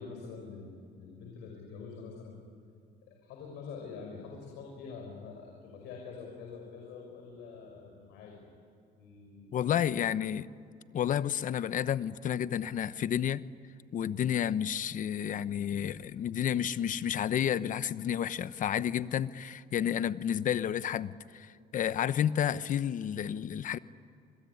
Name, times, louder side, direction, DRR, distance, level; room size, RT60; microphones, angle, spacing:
voice 1, 0.0-2.4 3.1-8.5 9.0-10.1, left 5 dB, 90° left, 0 dB, 5.9 m, -46 dB
voice 2, 9.5-10.5 10.9-13.4 13.9-23.8, left 9 dB, 50° left, 15 dB, 0.9 m, -31 dB
28.5 x 21.5 x 9.8 m, 2.4 s
cardioid pair, 110°, 17 cm